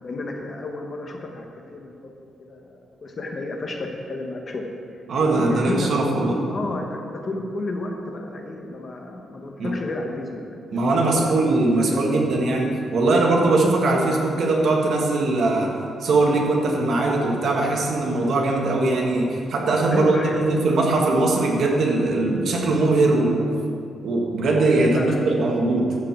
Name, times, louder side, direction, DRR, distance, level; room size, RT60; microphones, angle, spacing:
voice 1, 0.0-2.1 2.4-4.7 5.5-5.9 6.5-11.5 11.9-12.3 19.8-20.5 24.8-25.2, left 2 dB, 35° left, 2 dB, 1.2 m, -32 dB
voice 2, 5.1-6.4 9.6-9.7 10.7-15.7 16.0-23.5 24.0-26.0, right 2 dB, 60° right, -1 dB, 1.8 m, -20 dB
12.5 x 4.8 x 7.5 m, 2.5 s
cardioid pair, 145°, 0 cm